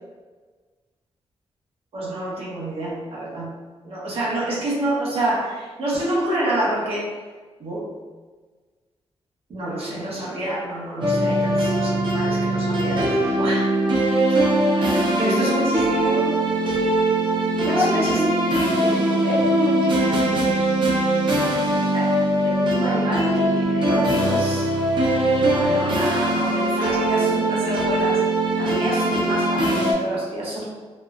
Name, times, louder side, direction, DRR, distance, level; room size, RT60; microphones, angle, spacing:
voice 1, 1.9-3.5 3.8-7.1 7.6-7.9 9.5-13.1 13.4-13.8 14.8-15.9 17.7-18.2 21.9-22.2 22.4-24.7 25.4-28.2 28.6-30.6, right 1 dB, 65° right, -6 dB, 1.1 m, -28 dB
sound 1, 11.0-29.9, right 1 dB, 50° right, 0.7 m, -21 dB
voice 2, 14.8-16.3 17.5-20.5, left 1 dB, 10° right, -7 dB, 0.7 m, -28 dB
4.0 x 2.4 x 2.4 m, 1.4 s
wide cardioid pair, 140°, 11 cm